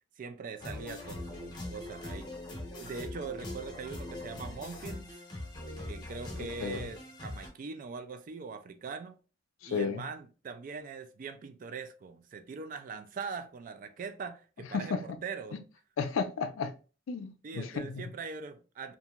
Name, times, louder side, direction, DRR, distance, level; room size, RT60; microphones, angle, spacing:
voice 1, 0.2-2.3 2.7-5.2 5.9-9.2 9.7-15.6 17.4-18.9, right 5 dB, 45° right, 0.3 m, -42 dB
sound 1, 0.6-7.5, left 1 dB, 20° left, 0.8 m, -42 dB
voice 2, 6.4-6.8 9.6-10.0 14.7-15.2 15.5-15.6 16.0-16.7 17.1-18.0, left 5 dB, 90° left, 0.4 m, -33 dB
2.9 x 2.5 x 2.3 m
head